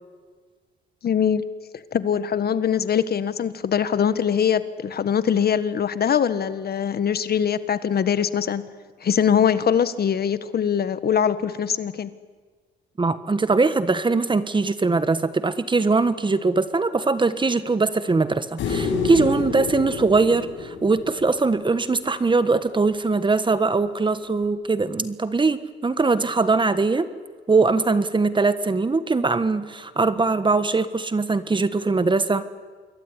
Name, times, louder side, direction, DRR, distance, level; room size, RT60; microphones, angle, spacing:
voice 1, 1.0-1.4 1.9-8.6 9.0-12.1, left 8 dB, 50° left, 13 dB, 1.6 m, -22 dB
voice 2, 13.0-27.1 27.5-32.4, right 3 dB, 25° right, 13 dB, 1.5 m, -21 dB
sound 1, 18.6-21.9 24.4-24.5, left 4 dB, 75° left, 6.4 m, -28 dB
27.0 x 22.0 x 9.8 m, 1.5 s
cardioid pair, 90°, 20 cm